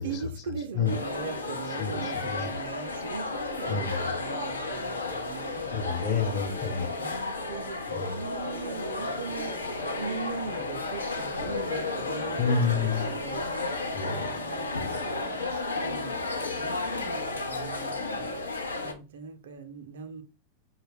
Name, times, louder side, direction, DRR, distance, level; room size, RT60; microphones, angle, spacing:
voice 1, 0.0-5.7 7.0-13.7 14.0-16.2 16.6-18.3 18.8-20.2, right 5 dB, 60° right, 0.5 m, -40 dB
sound 1, 0.8-18.9, left 3 dB, 80° left, 0.6 m, -33 dB
voice 2, 1.8-2.5 3.7-4.0 5.6-6.9 7.9-8.1 12.4-13.1 13.9-14.3, left 5 dB, 40° left, 0.9 m, -29 dB
4.9 x 2.1 x 4.2 m
figure-of-eight pair, 90°, 0 cm